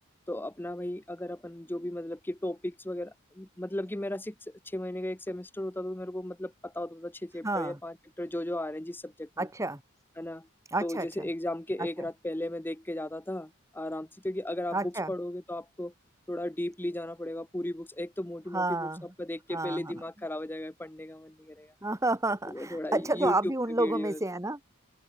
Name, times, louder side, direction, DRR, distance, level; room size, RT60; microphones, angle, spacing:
voice 1, 0.3-9.5 10.2-10.5 10.8-15.9 16.3-21.7 22.5-23.5 23.8-24.2, left 1 dB, 10° left, 0.6 m, -35 dB
voice 2, 7.4-7.8 9.4-9.8 10.7-11.3 14.7-15.1 18.5-19.0 19.5-19.9 21.8-24.7, right 2 dB, 15° right, 1.6 m, -30 dB
open air
head